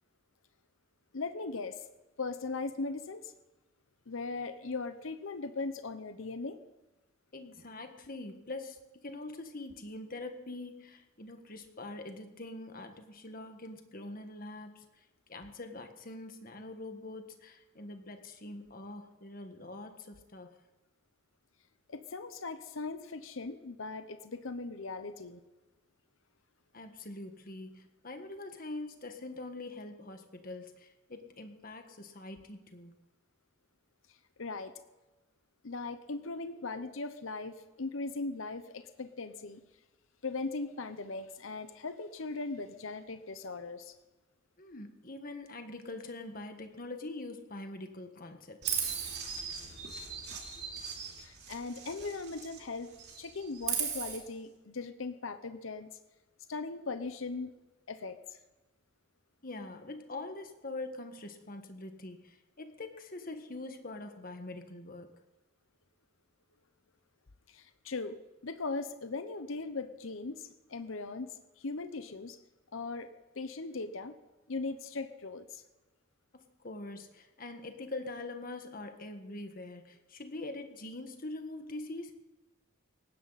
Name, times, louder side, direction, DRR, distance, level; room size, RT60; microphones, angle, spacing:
voice 1, 1.1-1.8 2.2-3.3 4.1-6.6 21.9-25.4 34.4-34.7 35.6-39.6 40.2-43.9 51.2-52.9 53.2-55.9 56.5-57.5 57.9-58.4 67.5-68.2 68.4-72.4 72.7-73.1 73.3-74.2 74.5-75.6, left 3 dB, 90° left, 10 dB, 0.9 m, -39 dB
voice 2, 7.3-14.8 15.3-20.5 26.7-32.9 44.6-48.9 59.4-65.2 76.3-82.1, left 2 dB, 45° left, 6 dB, 1.7 m, -44 dB
Chirp tweet, 48.6-52.6 52.9-54.2, right 7 dB, 55° right, 3.4 m, -37 dB
19.0 x 16.5 x 4.2 m, 1.1 s
head